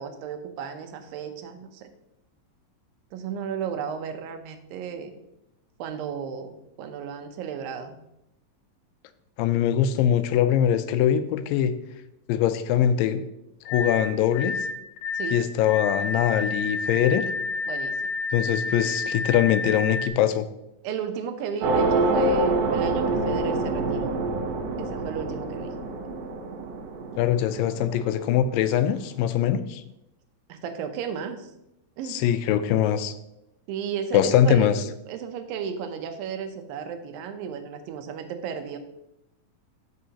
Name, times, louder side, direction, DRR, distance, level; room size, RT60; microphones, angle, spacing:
voice 1, 0.0-1.9 3.1-5.1 5.8-8.0 15.1-15.4 17.7-18.0 20.8-24.1 24.8-25.7 30.5-31.5 32.0-32.4 33.7-34.7 35.1-38.8, right 7 dB, 90° right, 7 dB, 2.6 m, -34 dB
voice 2, 9.4-11.7 12.3-13.2 13.7-14.5 15.3-17.3 18.3-20.5 27.2-29.8 32.1-33.1 34.1-34.8, left 10 dB, 90° left, 11 dB, 2.3 m, -22 dB
sound 1, 13.7-20.1, left 3 dB, 70° left, 1.8 m, -30 dB
sound 2, 21.6-28.4, right 2 dB, 70° right, 2.3 m, -26 dB
12.5 x 5.4 x 2.8 m, 0.85 s
omnidirectional pair, 4.0 m